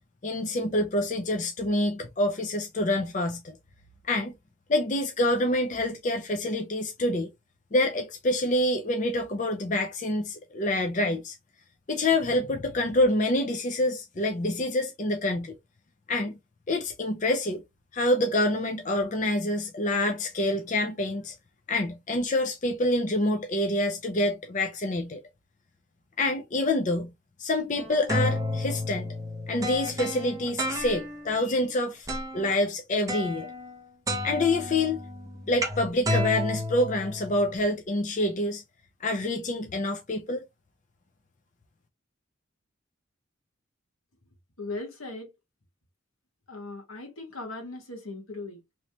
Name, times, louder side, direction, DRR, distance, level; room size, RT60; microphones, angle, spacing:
voice 1, 0.2-3.6 4.1-4.3 4.7-7.3 7.7-11.4 11.9-15.5 16.1-16.3 16.7-17.6 17.9-21.3 21.7-25.2 26.2-27.1 27.4-29.2 29.5-32.1 32.3-33.5 34.2-35.1 35.5-38.6 39.0-40.4, left 1 dB, 35° left, 0.5 m, -27 dB
sound 1, 27.8-31.4 32.1-32.5 33.1-33.8 34.1-37.6, left 1 dB, 15° right, 0.6 m, -31 dB
voice 2, 44.6-45.3 46.5-48.6, left 2 dB, 80° left, 1.4 m, -38 dB
3.2 x 3.0 x 2.8 m
head